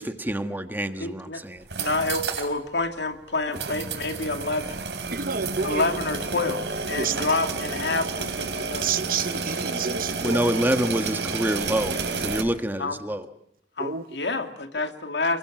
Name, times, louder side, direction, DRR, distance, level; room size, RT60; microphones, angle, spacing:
voice 1, 0.0-1.6 10.2-13.3, right 1 dB, 10° right, 1.4 m, -27 dB
voice 2, 1.0-1.4 1.8-4.8 5.6-9.0 12.8-13.0 13.8-15.4, left 3 dB, 80° left, 2.5 m, -28 dB
sound 1, 1.6-2.5 2.8-2.9 3.5-12.4, right 4 dB, 80° right, 4.4 m, -30 dB
voice 3, 5.1-5.8 7.0-7.1 8.8-10.4 13.8-14.0, right 6 dB, 50° right, 1.0 m, -29 dB
29.0 x 22.0 x 7.6 m
head